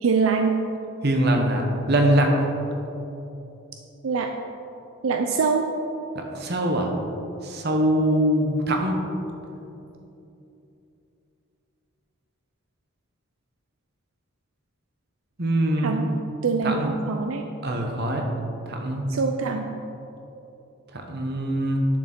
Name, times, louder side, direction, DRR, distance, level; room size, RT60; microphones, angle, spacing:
voice 1, 0.0-0.5 4.0-4.3 5.0-5.7 15.8-16.1 16.4-17.4 19.1-19.7, right 5 dB, 80° right, 4 dB, 0.5 m, -23 dB
voice 2, 1.0-2.4 6.1-6.9 7.4-9.0 15.4-16.0 16.6-16.9 17.6-18.2 18.7-19.1 20.9-21.9, right 1 dB, 55° right, 2 dB, 1.1 m, -23 dB
10.0 x 6.4 x 4.4 m, 2.9 s
head